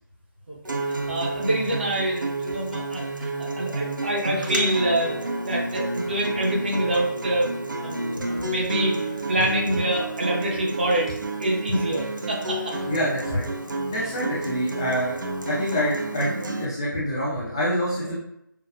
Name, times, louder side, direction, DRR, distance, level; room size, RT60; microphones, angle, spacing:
voice 1, 0.5-5.2 5.4-11.1 11.4-12.8, right 1 dB, 30° right, -2 dB, 0.7 m, -26 dB
Acoustic guitar, 0.6-16.7, right 2 dB, 70° right, 0.6 m, -30 dB
voice 2, 12.9-13.4 13.9-15.2 15.4-18.1, equal, 10° left, -9 dB, 0.4 m, -26 dB
5.6 x 2.3 x 2.3 m, 0.79 s
figure-of-eight pair, 155°, 11 cm